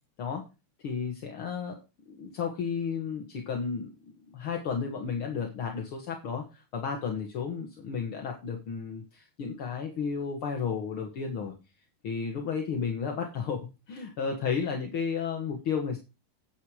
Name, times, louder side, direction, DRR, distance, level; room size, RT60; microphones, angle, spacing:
voice 1, 0.8-1.8 2.1-3.9 4.3-11.5 12.0-16.0, left 6 dB, 50° left, 2 dB, 1.6 m, -33 dB
9.4 x 9.2 x 4.9 m, 0.28 s
omnidirectional pair, 4.6 m